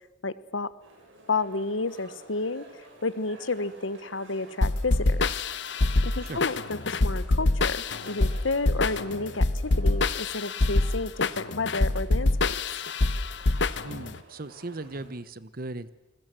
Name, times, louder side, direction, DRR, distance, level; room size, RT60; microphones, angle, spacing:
voice 1, 0.2-0.7 1.3-5.4 6.0-12.5, left 3 dB, 85° left, 16 dB, 1.1 m, -31 dB
sound 1, 0.8-15.1, right 1 dB, 80° right, 7.8 m, -51 dB
sound 2, 4.6-14.2, left 2 dB, 65° left, 1.0 m, -25 dB
voice 2, 13.8-15.9, right 2 dB, 50° right, 16 dB, 1.0 m, -37 dB
29.5 x 21.0 x 7.7 m, 1.1 s
head